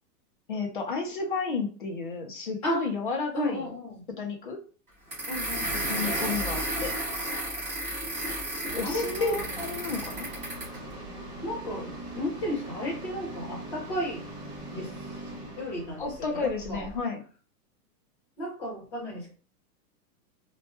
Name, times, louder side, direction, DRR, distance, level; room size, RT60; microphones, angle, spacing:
voice 1, 0.5-3.7 4.2-4.6 5.8-7.0 8.7-10.3 16.0-17.2, left 4 dB, 35° left, 2 dB, 0.5 m, -32 dB
voice 2, 3.3-4.0 5.3-6.1 8.8-9.4 11.4-14.3 14.7-14.9 15.5-16.9 18.4-19.3, left 1 dB, 20° left, -3 dB, 0.8 m, -33 dB
sound 1, 5.1-10.8, right 1 dB, 25° right, 1.6 m, -32 dB
sound 2, 8.6-17.0, right 1 dB, 45° right, 1.8 m, -41 dB
4.2 x 2.2 x 2.7 m, 0.38 s
hypercardioid pair, 180°, 48 cm